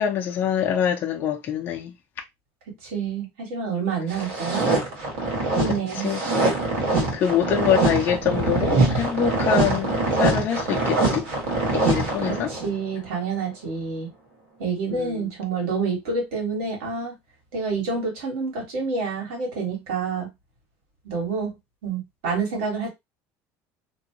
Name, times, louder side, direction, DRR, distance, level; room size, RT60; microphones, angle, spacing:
voice 1, 0.0-1.9 5.7-6.2 7.1-11.3 11.7-12.5 14.9-15.3, left 9 dB, 30° left, 0.5 m, -25 dB
voice 2, 2.7-4.7 5.5-6.1 12.3-14.1 14.6-17.2 17.5-20.3 21.0-21.6 21.8-22.9, right 4 dB, 90° right, 2.0 m, -28 dB
sound 1, 4.1-12.7, right 3 dB, 75° right, 1.9 m, -23 dB
3.0 x 2.6 x 2.9 m
cardioid pair, 180°, 7 cm